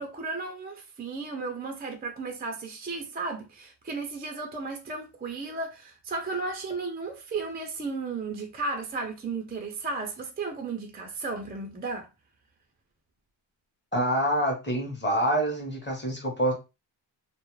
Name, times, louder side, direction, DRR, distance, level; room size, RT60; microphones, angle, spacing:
voice 1, 0.0-12.1, right 3 dB, 20° right, 0.4 m, -34 dB
voice 2, 13.9-16.5, right 1 dB, 20° left, 0.9 m, -26 dB
2.3 x 2.0 x 3.0 m
wide cardioid pair, 120°, 47 cm